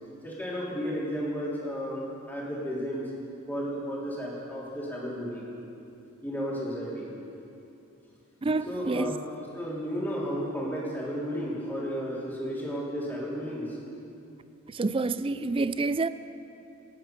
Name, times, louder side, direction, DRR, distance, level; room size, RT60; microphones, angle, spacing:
voice 1, 0.2-3.0 3.5-5.5 6.2-7.1 8.6-9.2 9.5-13.8, equal, 10° left, 3.2 m, -33 dB
voice 2, 8.4-9.2 14.7-16.1, right 3 dB, 25° right, 0.4 m, -28 dB
26.5 x 9.1 x 5.9 m
head